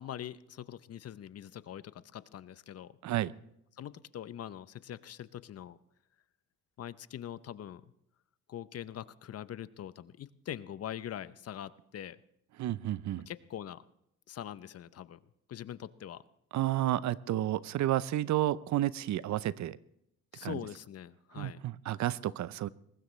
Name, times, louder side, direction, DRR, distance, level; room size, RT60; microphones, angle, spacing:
voice 1, 0.0-2.9 3.8-5.8 6.8-7.9 8.5-12.2 13.3-13.8 14.3-15.2 15.5-16.2 20.3-21.6, left 10 dB, 55° left, 15 dB, 0.7 m, -43 dB
voice 2, 12.6-13.3 16.5-19.8 20.4-20.6 21.3-22.7, right 13 dB, 70° right, 18 dB, 0.6 m, -31 dB
22.0 x 19.5 x 3.2 m, 0.78 s
cardioid pair, 90°, 30 cm